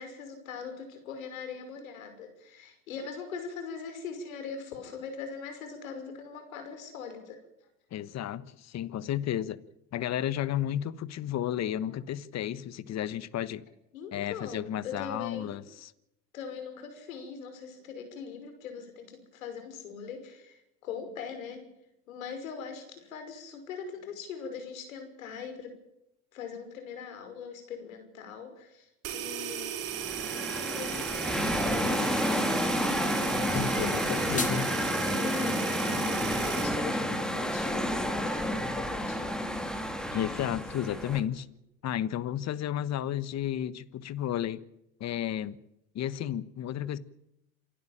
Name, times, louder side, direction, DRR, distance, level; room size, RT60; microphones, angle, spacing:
voice 1, 0.0-7.4 13.9-15.6 16.3-21.7 22.1-25.7 26.3-29.9 30.4-39.5 40.9-41.0, left 6 dB, 90° left, 5.7 m, -42 dB
voice 2, 7.9-9.6 9.9-13.6 14.1-15.9 33.5-34.7 40.1-41.5 41.8-44.6 45.0-45.6 45.9-47.0, left 11 dB, 40° left, 1.3 m, -32 dB
sound 1, 29.0-36.7, right 10 dB, 80° right, 4.4 m, -36 dB
sound 2, 29.9-41.2, equal, ahead, 3.1 m, -30 dB
sound 3, 33.9-34.9, left 4 dB, 20° left, 3.2 m, -37 dB
28.0 x 12.0 x 8.8 m
supercardioid pair, 95°, 39 cm